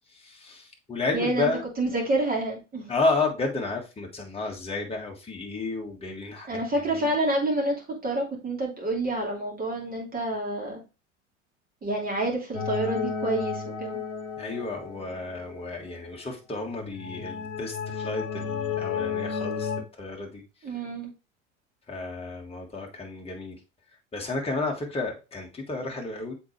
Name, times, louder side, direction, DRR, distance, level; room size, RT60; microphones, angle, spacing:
voice 1, 0.1-1.6 2.9-7.2 14.4-20.8 21.9-23.6 24.1-26.3, left 3 dB, 15° left, 0 dB, 1.8 m, -32 dB
voice 2, 1.1-1.5 1.8-2.9 6.5-10.8 11.8-14.0 20.6-21.1, right 2 dB, 25° right, -1 dB, 2.9 m, -28 dB
sound 1, 12.5-15.6 16.6-19.8, left 6 dB, 60° left, 1.1 m, -33 dB
7.0 x 4.5 x 3.1 m, 0.29 s
figure-of-eight pair, 75°, 37 cm